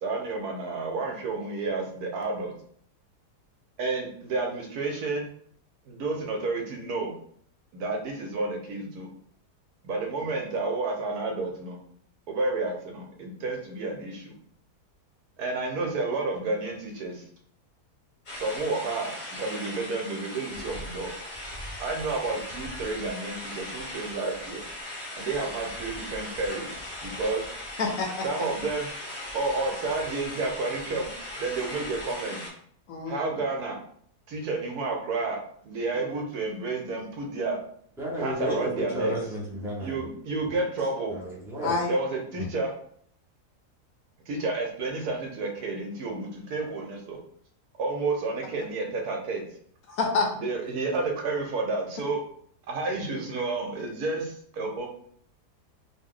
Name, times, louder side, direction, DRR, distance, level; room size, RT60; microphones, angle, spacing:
voice 1, 0.0-2.5 3.8-5.3 5.9-7.1 7.7-9.1 9.8-11.8 12.3-14.3 15.4-17.2 18.4-21.1 21.8-24.6 25.2-26.8 27.0-27.4 28.2-28.9 29.3-31.1 31.4-32.4 33.1-33.8 34.3-37.6 38.2-39.2 39.8-41.2 41.9-42.7 44.3-47.2 47.8-49.4 50.4-52.2 52.7-54.9, right 3 dB, 75° right, 1 dB, 1.1 m, -30 dB
sound 1, 18.3-32.5, left 1 dB, 40° left, 0.8 m, -39 dB
voice 2, 27.8-28.2 32.9-33.3 41.6-41.9 49.9-50.3, left 4 dB, 70° left, 1 dB, 0.9 m, -27 dB
voice 3, 38.0-40.1 41.1-41.8 42.4-42.5, equal, 5° right, -5 dB, 0.5 m, -32 dB
3.0 x 2.1 x 3.6 m, 0.62 s
omnidirectional pair, 1.7 m